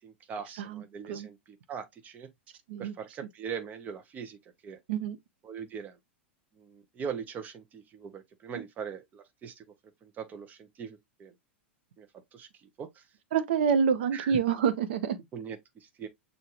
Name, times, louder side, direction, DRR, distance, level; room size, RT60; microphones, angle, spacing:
voice 1, 0.0-2.3 2.8-4.8 5.4-6.0 6.5-9.7 10.0-11.3 12.0-12.1 12.3-13.1 14.1-14.4 15.3-16.1, right 7 dB, 25° right, 1.0 m, -41 dB
voice 2, 0.6-1.3 2.7-2.9 4.9-5.2 8.5-8.6 13.3-15.2, right 7 dB, 60° right, 0.8 m, -27 dB
6.7 x 2.7 x 3.0 m
figure-of-eight pair, 95°, 6 cm